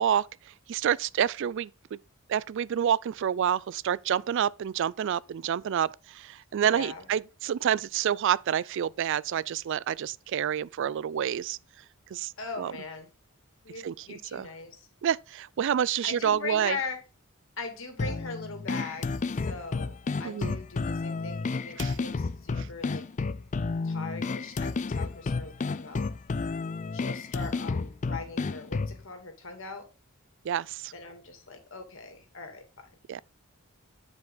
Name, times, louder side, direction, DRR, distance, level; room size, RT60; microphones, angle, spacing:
voice 1, 0.0-2.0 2.3-11.6 12.1-12.3 12.6-12.7 13.8-14.5 15.0-16.8 20.2-20.6 21.8-22.0 22.6-22.7 30.4-30.9 33.1-33.2, right 9 dB, 60° right, 0.3 m, -28 dB
voice 2, 6.6-7.1 12.4-13.1 13.6-14.8 16.0-17.0 17.6-23.0 23.8-26.0 26.9-29.9 30.9-32.9, left 4 dB, 60° left, 2.2 m, -40 dB
sound 1, 18.0-29.0, left 4 dB, 35° left, 0.4 m, -31 dB
9.5 x 5.3 x 3.8 m
head